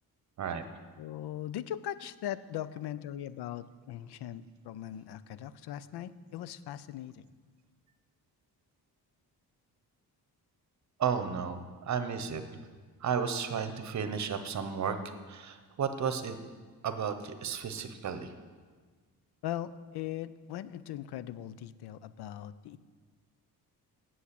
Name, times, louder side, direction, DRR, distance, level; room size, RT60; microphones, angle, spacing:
voice 1, 1.0-7.2 19.4-22.8, left 11 dB, 80° left, 16 dB, 0.6 m, -40 dB
voice 2, 11.0-12.6 13.0-15.0 15.3-16.4 16.8-18.3, right 7 dB, 45° right, 9 dB, 0.9 m, -33 dB
8.4 x 7.5 x 8.2 m, 1.5 s
wide cardioid pair, 150°, 39 cm